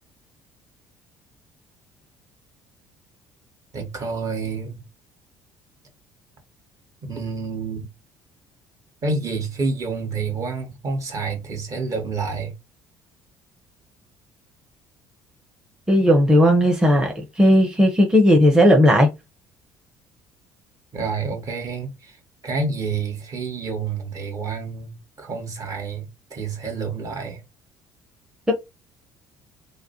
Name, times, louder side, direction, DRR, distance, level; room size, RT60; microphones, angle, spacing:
voice 1, 3.7-4.8 7.0-7.8 9.0-12.5 20.9-22.2 22.4-27.4, right 4 dB, 35° right, 1.0 m, -28 dB
voice 2, 15.9-19.1, equal, 5° right, 0.7 m, -15 dB
2.4 x 2.1 x 2.7 m
figure-of-eight pair, 55°, 10 cm